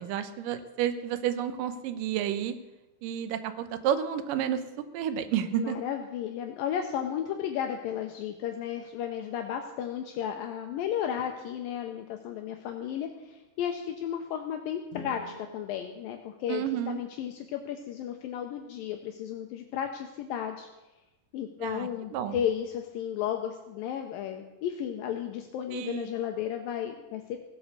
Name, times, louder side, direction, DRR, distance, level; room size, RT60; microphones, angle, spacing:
voice 1, 0.0-2.6 3.0-5.8 16.5-17.0 21.6-22.4 25.7-26.2, right 9 dB, 75° right, 11 dB, 2.2 m, -31 dB
voice 2, 5.5-20.7 21.3-27.4, left 9 dB, 75° left, 4 dB, 2.3 m, -34 dB
sound 1, 14.8-17.1, left 4 dB, 40° left, 2.5 m, -48 dB
17.0 x 8.6 x 6.6 m, 1.0 s
omnidirectional pair, 4.5 m